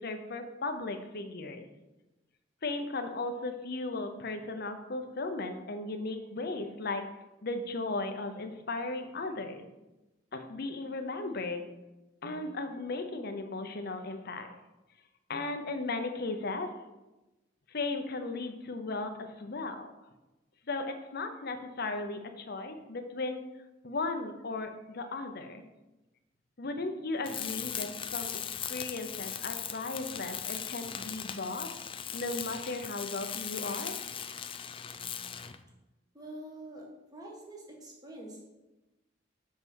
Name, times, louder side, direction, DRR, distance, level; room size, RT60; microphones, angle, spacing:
voice 1, 0.0-1.6 2.6-7.0 7.4-9.6 10.3-11.7 12.2-14.6 15.3-16.7 17.7-19.9 20.7-23.4 23.8-25.6 26.6-28.4 28.7-31.7 32.1-33.9, left 3 dB, 60° left, 6 dB, 0.8 m, -36 dB
Tools, 27.2-35.6, left 8 dB, 30° left, 0.4 m, -39 dB
voice 2, 36.1-36.8 37.1-38.4, right 1 dB, 20° right, -2 dB, 1.8 m, -45 dB
5.6 x 5.6 x 6.3 m, 1.0 s
head